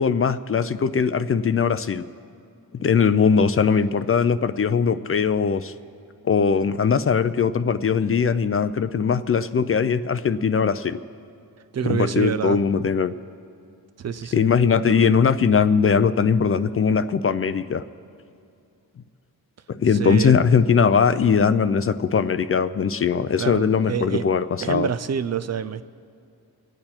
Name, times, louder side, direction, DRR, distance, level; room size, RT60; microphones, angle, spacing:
voice 1, 0.0-2.0 2.8-5.7 6.2-11.0 11.8-13.1 14.3-17.8 19.7-24.9, left 6 dB, 35° left, 0.4 m, -20 dB
voice 2, 11.7-12.6 14.0-14.5 14.9-15.1 20.0-20.4 23.4-24.2 24.6-25.8, right 8 dB, 45° right, 0.4 m, -27 dB
26.5 x 8.8 x 4.4 m
wide cardioid pair, 145°, 38 cm